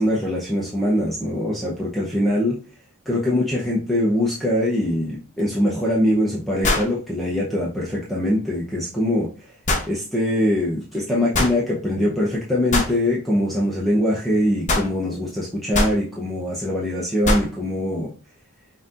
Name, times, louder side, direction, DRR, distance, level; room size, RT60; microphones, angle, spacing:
voice 1, 0.0-2.6 3.1-9.3 9.9-18.1, left 1 dB, ahead, -6 dB, 0.7 m, -22 dB
sound 1, 5.4-5.5 6.6-7.0 9.7-9.9 11.3-11.6 12.7-12.9 14.7-14.9 15.7-16.0 17.2-17.5, left 2 dB, 35° left, 0.9 m, -21 dB
5.7 x 2.8 x 2.5 m, 0.38 s
head